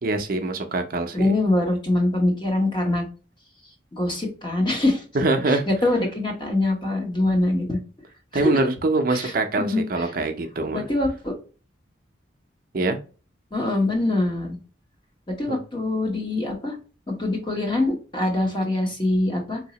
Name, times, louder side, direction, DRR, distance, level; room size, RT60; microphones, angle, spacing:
voice 1, 0.0-1.3 5.1-5.7 8.3-10.8 12.7-13.0 15.5-15.6, right 2 dB, 50° right, 6 dB, 0.5 m, -24 dB
voice 2, 1.1-3.0 3.9-5.0 5.5-7.8 8.3-8.6 9.1-10.1 10.7-11.3 13.5-14.6 15.3-16.8 17.1-19.6, left 2 dB, 25° left, 1 dB, 0.9 m, -24 dB
3.9 x 2.7 x 2.8 m, 0.35 s
head